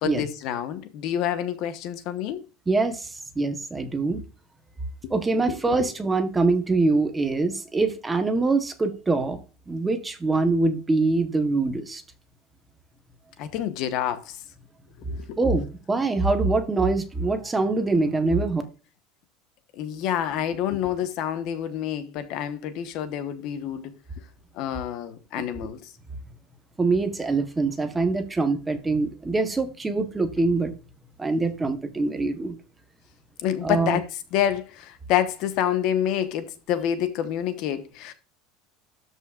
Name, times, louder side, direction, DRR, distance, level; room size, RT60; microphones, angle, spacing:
voice 1, 0.0-2.4 5.0-5.2 5.4-5.9 13.4-14.4 15.1-15.4 19.8-23.9 24.6-25.8 33.4-34.0 34.3-38.1, left 10 dB, 40° left, 1.0 m, -28 dB
voice 2, 2.7-4.2 5.1-9.4 9.7-12.0 15.4-18.6 25.6-25.7 26.8-30.7 31.2-32.6 33.6-34.0, right 3 dB, 10° right, 0.9 m, -24 dB
13.0 x 5.5 x 2.4 m
cardioid pair, 180°, 0 cm